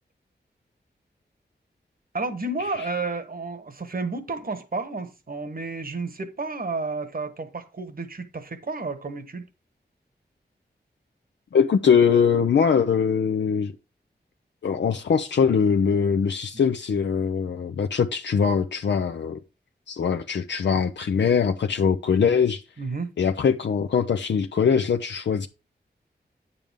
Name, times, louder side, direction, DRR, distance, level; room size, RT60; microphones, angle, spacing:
voice 1, 2.1-9.4 22.8-23.1, right 3 dB, 55° right, 1.4 m, -31 dB
voice 2, 11.5-13.7 14.6-19.4 19.9-22.6 23.2-25.5, left 6 dB, 85° left, 0.6 m, -22 dB
9.2 x 6.9 x 3.6 m
wide cardioid pair, 85°, 18 cm